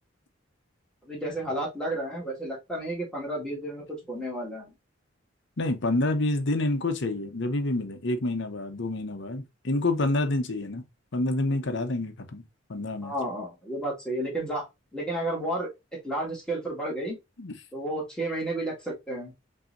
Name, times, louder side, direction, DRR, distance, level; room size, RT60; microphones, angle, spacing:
voice 1, 1.0-4.7 13.0-14.7 14.9-15.7 16.0-17.2 17.7-19.3, right 1 dB, 5° left, 1.9 m, -32 dB
voice 2, 5.6-10.8 11.1-12.4 12.7-13.1 17.4-17.6, left 2 dB, 65° left, 0.8 m, -28 dB
5.4 x 2.8 x 2.6 m
head